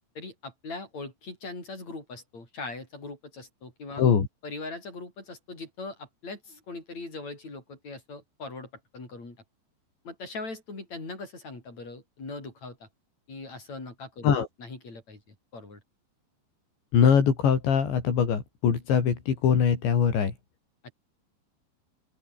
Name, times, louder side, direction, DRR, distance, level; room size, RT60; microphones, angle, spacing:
voice 1, 0.2-4.1 4.4-9.4 10.0-12.9 13.3-14.3 14.6-15.2 15.5-15.8 20.8-20.9, left 3 dB, 35° left, 9.1 m, -40 dB
voice 2, 16.9-20.3, left 7 dB, 75° left, 6.6 m, -22 dB
open air
omnidirectional pair, 5.1 m